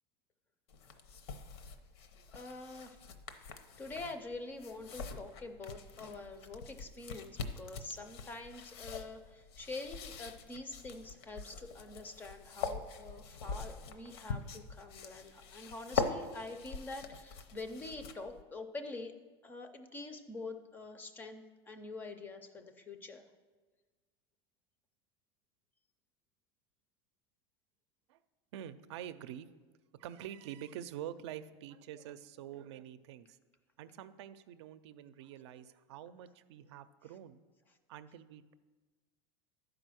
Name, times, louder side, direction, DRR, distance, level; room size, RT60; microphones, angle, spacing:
sound 1, 0.7-18.4, left 5 dB, 70° left, 0.8 m, -43 dB
voice 1, 2.3-3.0 3.8-19.1 19.4-23.2, left 3 dB, 15° left, 8 dB, 0.4 m, -46 dB
voice 2, 28.5-29.6 30.0-33.4 33.8-37.4 37.9-38.5, right 10 dB, 80° right, 12 dB, 0.5 m, -46 dB
11.5 x 4.9 x 6.2 m, 1.3 s
supercardioid pair, 175°, 14 cm